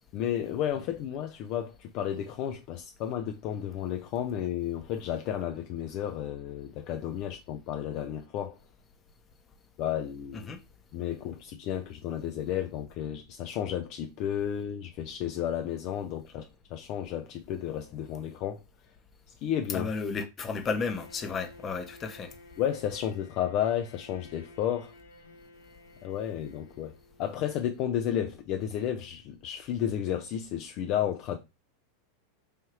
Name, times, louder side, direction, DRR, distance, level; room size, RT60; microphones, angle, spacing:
voice 1, 0.1-8.6 9.8-10.5 10.9-16.4 16.7-18.6 19.4-19.9 22.6-24.9 26.0-31.4, left 10 dB, 45° left, 0.4 m, -32 dB
voice 2, 19.7-22.3, left 4 dB, 30° left, 0.8 m, -33 dB
Bowed string instrument, 20.6-27.6, left 2 dB, 85° left, 0.7 m, -53 dB
4.9 x 2.7 x 3.0 m
figure-of-eight pair, 90°, 0 cm